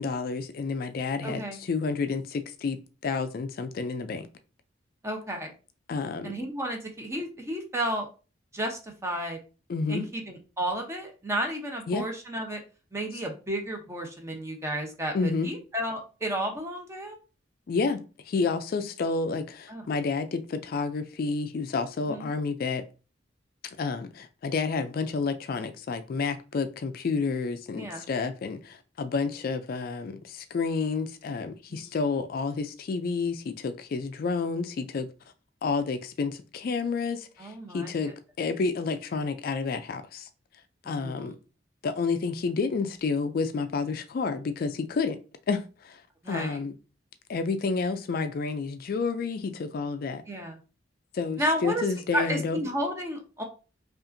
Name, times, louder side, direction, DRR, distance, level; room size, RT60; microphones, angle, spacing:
voice 1, 0.0-2.8 3.0-4.3 5.9-6.3 9.7-10.1 11.9-12.1 15.1-15.5 17.7-22.8 23.8-35.1 35.6-38.1 38.4-40.3 40.9-41.4 41.8-45.2 45.5-46.0 46.3-46.7 47.3-50.2 51.1-52.6, left 4 dB, 50° left, 0.3 m, -30 dB
voice 2, 1.2-1.6 5.0-5.5 6.2-8.1 8.5-9.4 9.9-12.6 12.9-17.2 19.7-19.9 22.1-22.3 27.7-28.1 31.7-32.0 37.4-38.1 40.8-41.4 46.2-46.6 50.3-50.6 51.4-51.9 52.1-53.4, right 1 dB, 15° right, 0.8 m, -32 dB
5.4 x 2.5 x 2.5 m
head